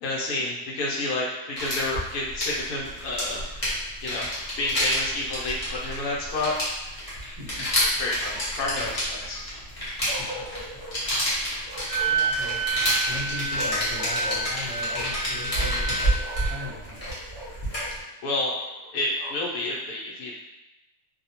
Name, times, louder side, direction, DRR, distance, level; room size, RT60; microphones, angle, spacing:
voice 1, 0.0-3.4 4.0-4.3 4.6-6.5 7.9-9.4 18.2-18.5 18.9-20.4, left 2 dB, 75° left, -4 dB, 1.1 m, -29 dB
sound 1, 1.6-18.0, equal, 35° left, 0.6 m, -29 dB
Bark, 4.5-5.2 7.6-8.7 10.1-11.0 11.7-12.8 13.5-15.2 15.5-17.9 18.6-19.5, equal, 55° right, 0.9 m, -41 dB
voice 2, 7.2-7.7 10.0-10.3 12.0-16.2 16.5-17.1, left 2 dB, 30° right, -7 dB, 0.7 m, -39 dB
Wind instrument woodwind instrument, 11.9-16.6, right 4 dB, 75° right, 1.1 m, -29 dB
2.7 x 2.0 x 2.8 m, 0.97 s
omnidirectional pair, 1.6 m